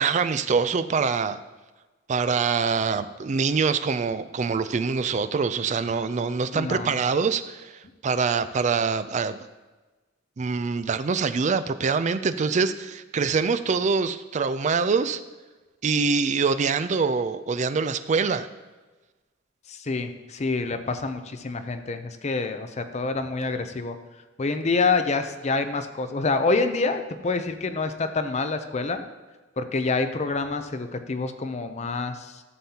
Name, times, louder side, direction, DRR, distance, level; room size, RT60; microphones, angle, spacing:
voice 1, 0.0-1.4 2.1-9.4 10.4-15.2 15.8-18.5, right 5 dB, 40° right, 12 dB, 0.4 m, -24 dB
voice 2, 6.5-7.0 19.7-24.0 24.4-29.0 29.6-32.4, left 3 dB, 35° left, 8 dB, 0.6 m, -27 dB
12.5 x 7.1 x 2.9 m, 1.2 s
head